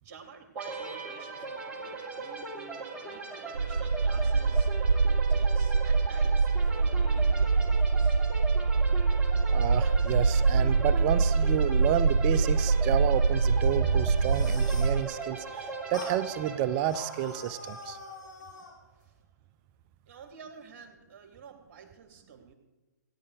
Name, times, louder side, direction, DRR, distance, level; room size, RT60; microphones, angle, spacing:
voice 1, 0.0-8.2 18.4-18.5 18.9-19.2 20.1-22.5, right 6 dB, 45° right, 4 dB, 2.9 m, -51 dB
sound 1, 0.6-18.2, right 3 dB, 10° right, 2.1 m, -40 dB
sound 2, 3.6-15.0, right 4 dB, 85° right, 0.4 m, -24 dB
voice 2, 9.5-18.0, right 11 dB, 25° right, 15 dB, 0.5 m, -30 dB
sound 3, 14.0-15.0 15.9-16.2 16.8-18.8, left 2 dB, 70° left, 4.1 m, -44 dB
17.5 x 11.0 x 4.9 m, 1.2 s
figure-of-eight pair, 130°, 10 cm